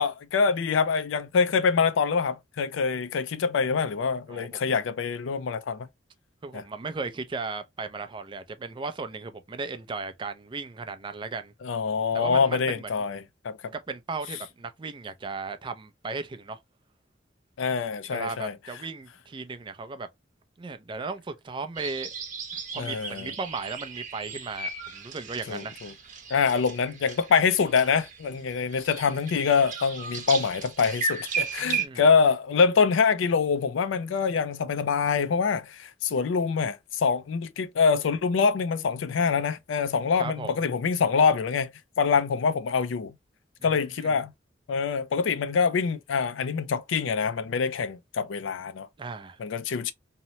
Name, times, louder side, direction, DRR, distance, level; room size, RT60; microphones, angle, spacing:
voice 1, 0.0-5.9 6.5-6.6 11.6-13.6 17.6-18.5 22.8-23.3 25.5-25.9 26.3-41.7 42.0-43.1 43.6-44.3 44.7-48.9 49.4-49.9, left 5 dB, 85° left, 0.4 m, -25 dB
voice 2, 4.3-4.8 6.4-11.5 12.1-13.0 13.7-16.6 18.1-20.1 20.6-22.1 22.7-25.8 31.6-32.0 40.2-40.6 43.6-44.1 49.0-49.4, right 4 dB, 25° right, 0.4 m, -36 dB
sound 1, 21.8-31.9, right 5 dB, 40° right, 0.7 m, -35 dB
2.8 x 2.0 x 2.8 m
head